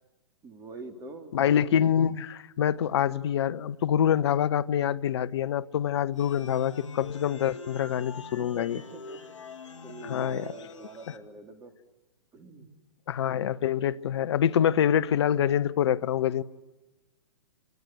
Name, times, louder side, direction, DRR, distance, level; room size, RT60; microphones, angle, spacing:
voice 1, 0.4-1.4 8.4-9.2 9.8-11.7 12.3-12.7, right 3 dB, 20° right, 3.8 m, -44 dB
voice 2, 1.3-8.8 10.0-10.4 13.1-16.4, left 9 dB, 60° left, 1.0 m, -26 dB
sound 1, 6.2-11.2, left 4 dB, 75° left, 2.1 m, -44 dB
27.5 x 27.0 x 8.0 m
figure-of-eight pair, 115°, 16 cm